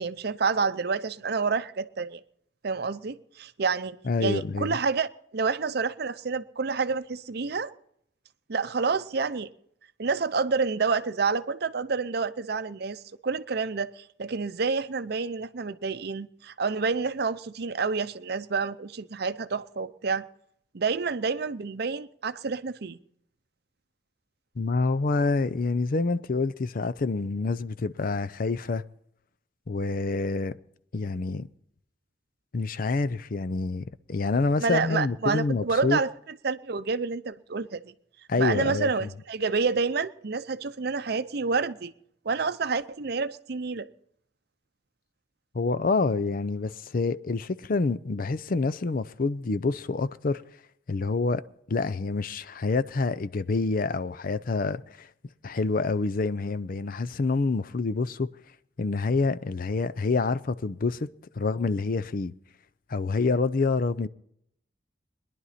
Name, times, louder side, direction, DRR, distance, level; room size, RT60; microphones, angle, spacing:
voice 1, 0.0-2.2 2.6-7.7 8.5-9.5 10.0-20.3 20.7-23.0 34.6-36.1 36.4-37.8 38.4-41.9 42.2-43.9, right 4 dB, 60° right, 0.6 m, -28 dB
voice 2, 4.0-4.8 24.6-28.8 29.7-30.5 30.9-31.5 32.5-36.0 38.3-39.1 45.5-50.4 50.9-51.4 51.7-55.1 55.4-58.3 58.8-61.1 61.4-62.3 62.9-64.1, left 3 dB, 50° left, 0.5 m, -27 dB
21.5 x 11.0 x 4.2 m
head